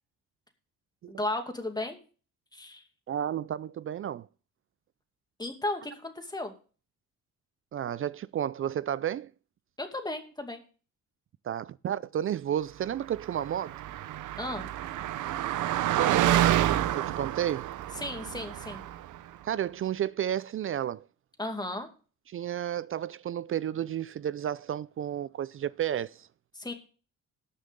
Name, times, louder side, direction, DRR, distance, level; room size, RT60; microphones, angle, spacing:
voice 1, 1.1-2.0 2.5-2.8 5.4-6.5 9.8-10.6 14.4-14.7 18.0-18.8 21.4-21.9 26.5-26.7, left 2 dB, 15° left, 2.4 m, -34 dB
voice 2, 3.1-4.3 7.7-9.3 11.4-13.8 16.0-16.7 16.9-17.7 19.5-21.0 22.3-26.3, right 10 dB, 45° right, 0.4 m, -32 dB
Car passing by, 13.2-19.1, right 12 dB, 80° right, 0.8 m, -28 dB
19.0 x 6.4 x 3.7 m
cardioid pair, 90°, 30 cm